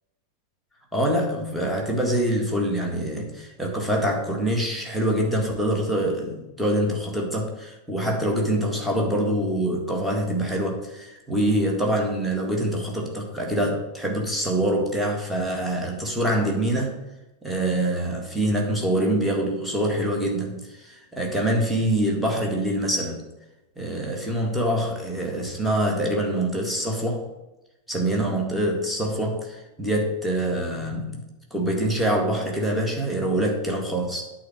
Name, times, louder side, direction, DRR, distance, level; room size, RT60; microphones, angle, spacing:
voice 1, 0.9-17.0 17.4-23.2 23.8-27.3 27.9-34.2, right 1 dB, 5° right, -1 dB, 1.9 m, -25 dB
9.0 x 4.2 x 7.2 m, 1.0 s
figure-of-eight pair, 90°, 0 cm